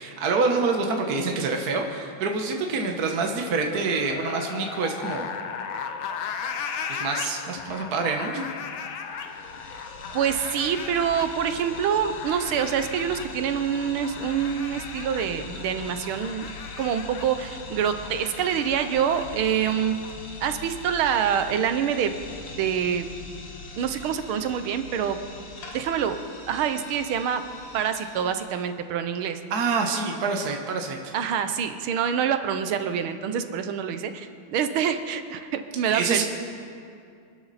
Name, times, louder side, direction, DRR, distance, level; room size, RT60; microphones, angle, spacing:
voice 1, 0.0-5.3 6.9-8.5 29.5-31.1 35.9-36.2, right 4 dB, 50° right, 2 dB, 1.5 m, -26 dB
sound 1, 3.1-20.1, left 6 dB, 75° left, 1.6 m, -37 dB
sound 2, 9.1-28.8, left 2 dB, 50° left, 1.9 m, -42 dB
voice 2, 10.1-16.5 16.8-20.0 20.4-22.1 22.6-23.1 23.7-25.2 25.7-26.2 26.5-27.4 27.7-29.4 31.1-36.2, right 8 dB, 80° right, 9 dB, 1.7 m, -26 dB
25.5 x 12.0 x 4.1 m, 2.4 s
omnidirectional pair, 2.3 m